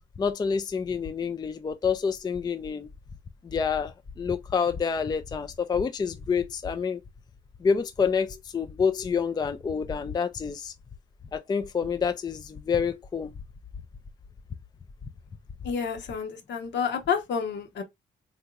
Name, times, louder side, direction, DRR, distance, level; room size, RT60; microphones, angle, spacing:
voice 1, 0.2-2.9 3.4-7.0 7.6-10.7 11.3-13.3, left 6 dB, 20° left, 0.3 m, -28 dB
voice 2, 15.6-17.8, left 6 dB, 65° left, 1.0 m, -29 dB
3.5 x 2.8 x 2.3 m
cardioid pair, 90°, 20 cm